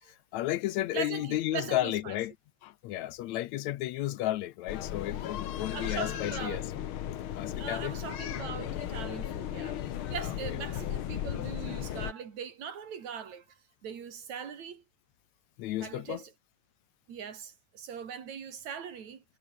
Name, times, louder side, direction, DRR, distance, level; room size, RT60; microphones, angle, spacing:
voice 1, 0.1-2.3 2.6-6.6 7.4-8.0 10.2-10.3 15.6-16.2, left 15 dB, 75° left, 2.0 m, -33 dB
voice 2, 0.9-2.1 5.7-6.6 7.6-9.8 10.1-14.8 15.8-16.3 17.1-19.2, right 7 dB, 70° right, 3.9 m, -40 dB
sound 1, 4.7-12.1, left 11 dB, 60° left, 1.6 m, -36 dB
omnidirectional pair, 3.3 m